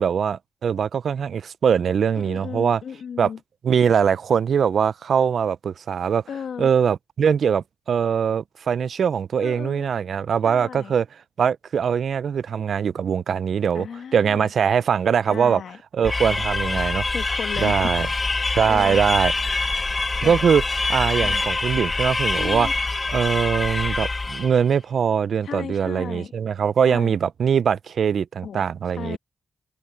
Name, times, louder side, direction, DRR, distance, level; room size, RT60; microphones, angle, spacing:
voice 1, 0.0-2.8 3.2-3.3 3.6-6.2 6.6-11.1 11.4-13.9 14.1-15.6 15.9-17.0 17.6-18.1 18.6-19.3 20.2-20.6 20.9-22.7 23.1-29.2, right 7 dB, 60° right, 0.4 m, -22 dB
voice 2, 2.1-3.4 6.3-6.7 9.4-9.9 10.4-10.9 13.7-14.5 15.3-15.8 16.3-16.8 17.1-17.9 18.2-19.2 20.2-20.4 21.2-21.5 22.4-22.7 25.4-26.3 26.9-27.2 28.4-28.7 28.9-29.2, left 7 dB, 80° left, 1.7 m, -35 dB
sound 1, 16.0-24.6, left 3 dB, 25° left, 1.2 m, -25 dB
wide cardioid pair, 170°, 0 cm